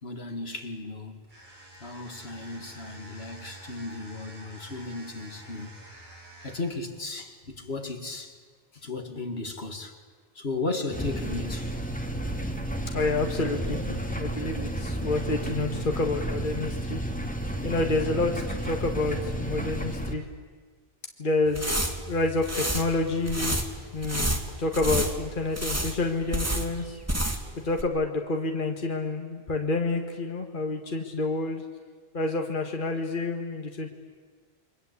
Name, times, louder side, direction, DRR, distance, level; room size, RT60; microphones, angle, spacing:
voice 1, 0.0-1.2 1.8-5.7 6.4-8.3 8.7-10.0 10.4-11.7, left 3 dB, 75° left, 2.5 m, -35 dB
sound 1, 1.2-6.8, right 2 dB, 50° right, 7.3 m, -47 dB
sound 2, 10.9-20.1, right 1 dB, 10° left, 2.1 m, -32 dB
voice 2, 12.9-17.0 17.6-20.3 21.2-23.6 23.9-27.0 27.6-31.6 32.1-33.9, left 2 dB, 50° left, 1.9 m, -28 dB
sound 3, 21.4-27.5 27.8-27.9, right 1 dB, 15° right, 2.1 m, -30 dB
29.0 x 24.0 x 8.4 m
omnidirectional pair, 1.1 m